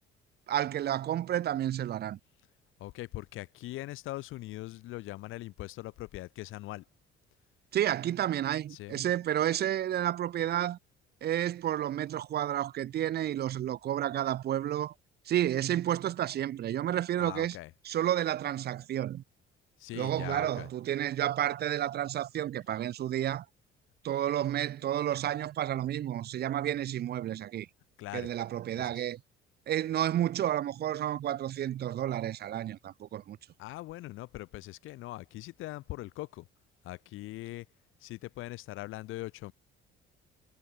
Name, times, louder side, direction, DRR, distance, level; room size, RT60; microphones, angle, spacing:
voice 1, 0.5-2.2 7.7-10.8 11.2-14.9 15.3-17.6 17.8-19.2 19.9-23.5 24.0-27.7 28.1-29.2 29.7-33.4, right 11 dB, 55° right, 1.8 m, -31 dB
voice 2, 2.8-6.8 8.7-9.0 17.2-17.7 19.8-20.7 28.0-28.3 28.7-29.0 33.6-36.5 36.8-37.7 38.0-39.5, left 17 dB, 85° left, 3.3 m, -41 dB
cardioid pair, 150°, 20 cm